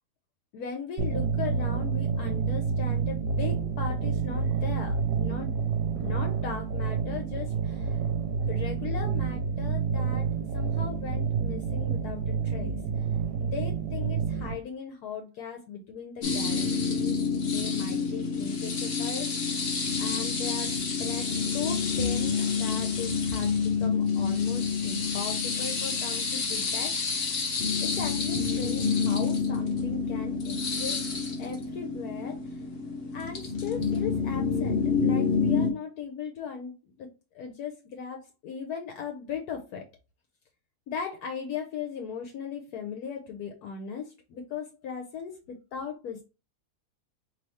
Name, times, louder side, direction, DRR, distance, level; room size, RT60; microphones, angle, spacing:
voice 1, 0.5-5.5 6.0-8.0 8.5-10.3 10.5-12.8 13.4-17.2 17.5-19.6 20.0-27.4 27.8-31.0 31.4-32.4 33.1-37.1 37.3-39.8 40.9-46.2, left 6 dB, 75° left, 4 dB, 1.2 m, -38 dB
sound 1, 1.0-14.5, right 6 dB, 85° right, 1.2 m, -29 dB
sound 2, 16.2-35.7, left 5 dB, 45° left, 0.8 m, -28 dB
4.1 x 3.0 x 3.4 m, 0.30 s
omnidirectional pair, 1.7 m